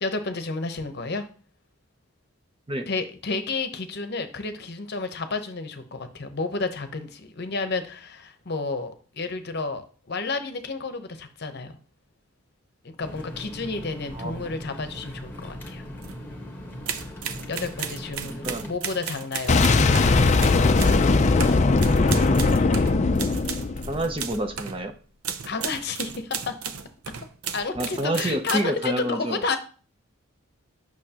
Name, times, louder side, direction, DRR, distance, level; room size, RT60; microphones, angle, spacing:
voice 1, 0.0-1.3 2.9-11.8 12.8-15.8 17.5-20.0 25.4-26.5 27.5-29.6, left 3 dB, 50° left, 8 dB, 0.8 m, -31 dB
sound 1, 13.0-18.7, left 1 dB, 10° left, 1.3 m, -39 dB
sound 2, 16.0-16.2 16.9-24.8 25.2-28.6, right 7 dB, 80° right, 0.6 m, -34 dB
voice 2, 18.2-18.7 23.9-24.9 27.8-29.4, right 1 dB, 25° right, 7 dB, 0.6 m, -28 dB
Boom, 19.5-24.3, left 3 dB, 35° left, 0.4 m, -19 dB
8.9 x 6.2 x 2.9 m, 0.40 s
head